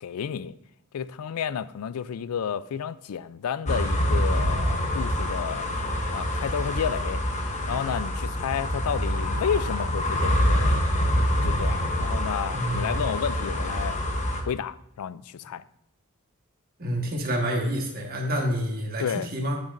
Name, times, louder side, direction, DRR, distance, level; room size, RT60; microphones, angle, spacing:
voice 1, 0.0-0.5 0.9-5.7 6.1-7.2 7.7-10.8 11.4-14.0 14.5-15.6 19.0-19.3, left 7 dB, 80° left, 0.4 m, -31 dB
sound 1, 3.7-14.4, left 1 dB, 30° left, 0.9 m, -26 dB
voice 2, 12.5-13.0 16.8-19.0 19.3-19.6, equal, 45° right, 1.4 m, -28 dB
10.0 x 6.5 x 2.6 m
head